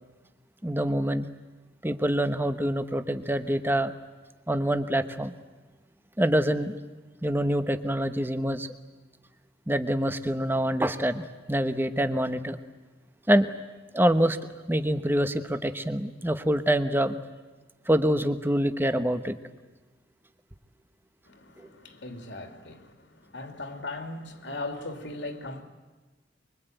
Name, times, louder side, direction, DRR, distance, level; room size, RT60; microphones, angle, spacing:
voice 1, 0.6-1.3 1.8-3.9 4.5-5.3 6.2-6.7 7.2-8.7 9.7-12.6 13.3-13.5 13.9-14.4 14.7-17.2 17.9-19.4, right 1 dB, 10° right, 1.1 m, -25 dB
voice 2, 21.3-25.6, left 2 dB, 65° left, 2.7 m, -38 dB
24.5 x 24.0 x 9.1 m
head